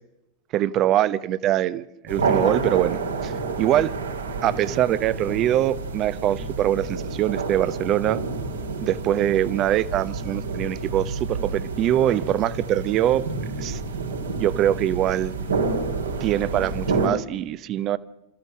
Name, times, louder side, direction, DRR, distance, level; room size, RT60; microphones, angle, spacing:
voice 1, 0.5-3.3 3.6-3.9 4.4-8.2 8.8-13.2 13.6-13.8 14.4-15.3 16.2-18.0, right 12 dB, 35° right, 0.8 m, -23 dB
sound 1, 2.1-17.1, right 4 dB, 70° right, 2.6 m, -29 dB
29.5 x 14.5 x 6.4 m
figure-of-eight pair, 90°, 0 cm